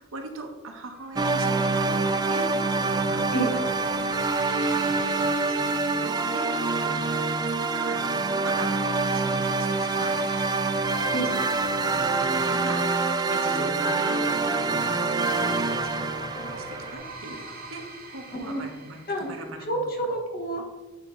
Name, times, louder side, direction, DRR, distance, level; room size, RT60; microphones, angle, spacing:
voice 1, 0.0-6.5 6.8-10.1 11.1-11.4 11.7-17.8 18.1-19.8, right 2 dB, 75° right, 3 dB, 1.0 m, -41 dB
sound 1, 0.8-19.5, right 2 dB, 50° right, 1.1 m, -42 dB
sound 2, 1.2-16.9, right 3 dB, 20° right, 0.3 m, -26 dB
voice 2, 19.7-20.8, right 1 dB, 45° left, 2 dB, 1.2 m, -28 dB
8.2 x 3.6 x 3.7 m, 1.1 s
head